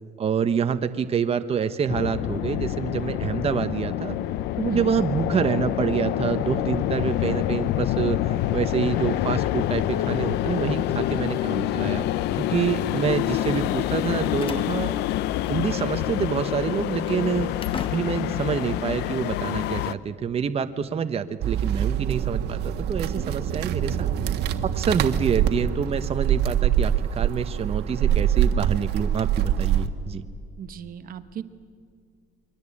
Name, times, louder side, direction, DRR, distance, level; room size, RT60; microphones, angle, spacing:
voice 1, 0.2-4.2 4.6-12.0 12.4-14.9 15.5-17.5 17.9-24.1 24.6-30.2, right 6 dB, 35° right, 9 dB, 1.1 m, -27 dB
sound 1, 1.9-19.9, left 13 dB, 85° left, 0.7 m, -27 dB
Slam, 13.8-15.9 16.1-16.3 16.8-18.4, left 4 dB, 30° left, 1.5 m, -41 dB
sound 2, 21.4-29.9, right 10 dB, 75° right, 1.5 m, -24 dB
voice 2, 30.6-31.4, right 9 dB, 55° right, 11 dB, 1.2 m, -36 dB
29.0 x 23.0 x 8.6 m, 2.3 s
cardioid pair, 110°, 17 cm